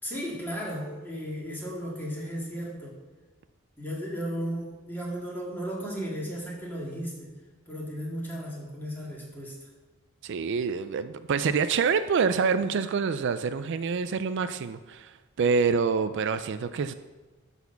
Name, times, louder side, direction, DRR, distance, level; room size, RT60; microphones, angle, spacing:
voice 1, 0.0-3.0 3.8-7.3 7.7-9.7, equal, 10° left, -4 dB, 2.1 m, -35 dB
voice 2, 10.2-16.9, right 5 dB, 55° right, 11 dB, 0.4 m, -26 dB
11.5 x 4.2 x 7.0 m, 1.2 s
head